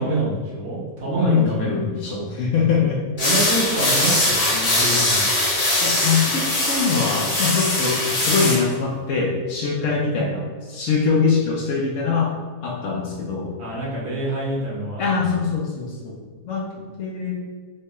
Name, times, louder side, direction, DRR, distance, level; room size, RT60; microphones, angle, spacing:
voice 1, 0.0-2.2 3.2-5.3 13.6-15.0, right 1 dB, 50° right, -6 dB, 1.0 m, -26 dB
voice 2, 1.2-3.0 5.8-12.3 12.6-13.5 15.0-16.2 16.4-17.4, left 5 dB, 65° left, -2 dB, 0.8 m, -23 dB
sound 1, 3.2-8.6, left 1 dB, 40° left, 0.6 m, -21 dB
3.2 x 3.1 x 2.9 m, 1.5 s
omnidirectional pair, 1.5 m